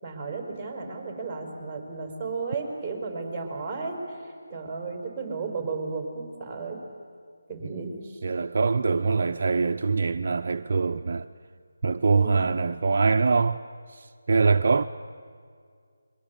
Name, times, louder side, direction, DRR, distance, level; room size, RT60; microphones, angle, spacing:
voice 1, 0.0-4.0 4.5-6.8 7.5-8.2 12.1-12.4, right 4 dB, 5° right, 5.2 m, -34 dB
voice 2, 7.6-7.9 8.2-11.3 11.8-13.6 13.9-14.8, right 4 dB, 50° right, 0.6 m, -24 dB
29.5 x 23.5 x 8.5 m
figure-of-eight pair, 160°, 0 cm